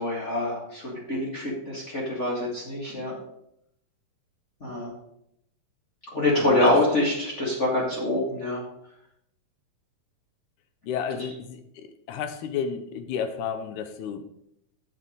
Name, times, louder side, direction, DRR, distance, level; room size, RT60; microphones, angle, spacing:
voice 1, 0.0-3.1 4.6-4.9 6.1-8.6, left 1 dB, 30° left, -4 dB, 1.5 m, -25 dB
voice 2, 6.4-6.8 10.9-14.3, left 7 dB, 75° left, 9 dB, 1.9 m, -32 dB
7.4 x 6.9 x 5.0 m, 0.77 s
omnidirectional pair, 3.9 m